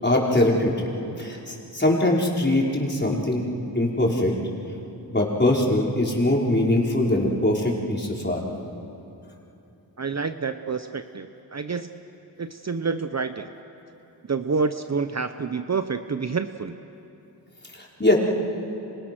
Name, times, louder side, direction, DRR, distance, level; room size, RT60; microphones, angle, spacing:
voice 1, 0.0-0.7 1.2-3.5 3.7-4.3 5.1-8.4 18.0-18.2, left 1 dB, 25° left, -2 dB, 5.0 m, -22 dB
voice 2, 10.0-11.9 12.4-13.5 14.3-16.7, right 5 dB, 40° right, 9 dB, 0.9 m, -28 dB
29.0 x 26.0 x 6.2 m, 2.9 s
cardioid pair, 50°, 43 cm